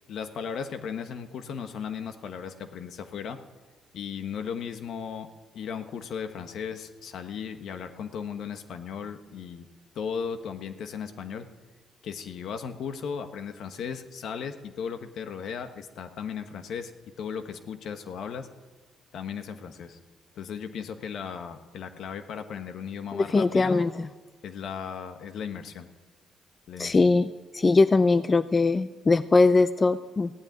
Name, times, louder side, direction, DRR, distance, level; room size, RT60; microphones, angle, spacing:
voice 1, 0.1-3.4 3.9-5.3 5.5-9.7 9.9-11.4 12.0-16.9 17.2-18.5 19.1-20.0 20.4-23.8 24.4-25.9 26.7-27.0, left 7 dB, 70° left, 8 dB, 1.2 m, -36 dB
voice 2, 23.1-24.1 26.8-27.3 27.5-30.3, left 3 dB, 30° left, 13 dB, 0.5 m, -21 dB
16.0 x 8.9 x 9.3 m, 1.3 s
cardioid pair, 90°, 0 cm